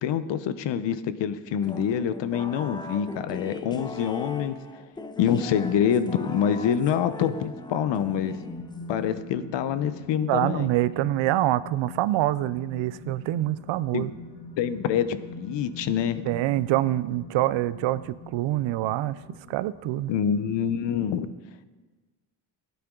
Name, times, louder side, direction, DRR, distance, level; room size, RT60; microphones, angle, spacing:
voice 1, 0.0-4.6 5.2-8.4 8.9-10.7 13.9-14.1 14.6-16.2 20.1-21.3, left 8 dB, 75° left, 13 dB, 0.8 m, -26 dB
sound 1, 1.6-9.0, left 3 dB, 10° left, 0.4 m, -39 dB
sound 2, 7.7-21.1, left 2 dB, 45° left, 1.7 m, -43 dB
voice 2, 10.3-14.1 16.2-19.2 19.5-20.1, right 15 dB, 90° right, 17 dB, 0.6 m, -25 dB
17.0 x 9.3 x 3.8 m, 1.3 s
cardioid pair, 145°, 44 cm